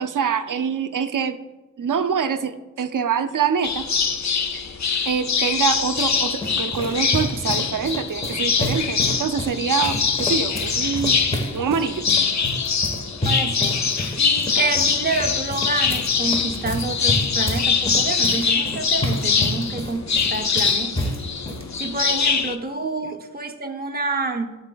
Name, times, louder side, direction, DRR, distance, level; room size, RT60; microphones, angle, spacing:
voice 1, 0.0-1.4 1.8-3.9 4.5-4.7 5.1-11.2 11.5-12.1 23.0-23.1, right 6 dB, 80° right, 11 dB, 0.5 m, -25 dB
sound 1, 3.6-22.5, left 6 dB, 65° left, 0.5 m, -23 dB
sound 2, 5.5-21.7, equal, 20° left, 1.0 m, -30 dB
voice 2, 13.2-21.2 21.8-24.6, right 3 dB, 30° right, 4 dB, 0.6 m, -28 dB
12.0 x 4.1 x 2.2 m, 1.1 s
wide cardioid pair, 45°, 31 cm